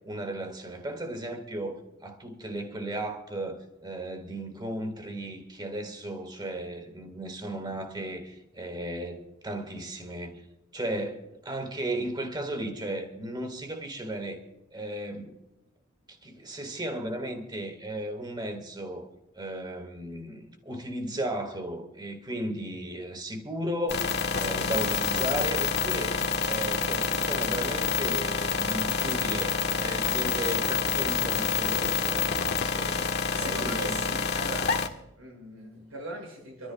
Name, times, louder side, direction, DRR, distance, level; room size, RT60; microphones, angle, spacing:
voice 1, 0.0-10.4 10.7-14.4 14.7-15.4 16.1-19.1 19.3-24.1 24.4-34.0, right 1 dB, 20° right, 2.0 m, -35 dB
sound 1, 23.9-34.9, left 6 dB, 55° left, 1.5 m, -27 dB
voice 2, 33.3-34.8 35.2-36.7, right 1 dB, 90° right, 7.0 m, -40 dB
27.0 x 13.5 x 2.5 m
head